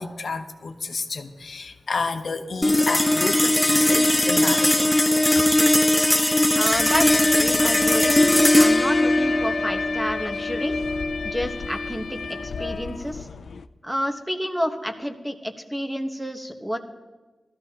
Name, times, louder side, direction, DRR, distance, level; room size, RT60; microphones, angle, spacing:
voice 1, 0.0-5.1 5.3-5.4, left 4 dB, 65° left, 6 dB, 0.8 m, -30 dB
sound 1, 2.6-13.2, left 1 dB, 10° left, 0.5 m, -20 dB
voice 2, 6.6-7.1 7.4-8.2 8.6-10.7 11.2-13.3 13.8-16.8, equal, 5° right, 5 dB, 1.1 m, -29 dB
sound 2, 6.7-13.7, left 5 dB, 90° left, 0.4 m, -30 dB
19.0 x 13.5 x 2.9 m, 1.2 s
wide cardioid pair, 110°, 0 cm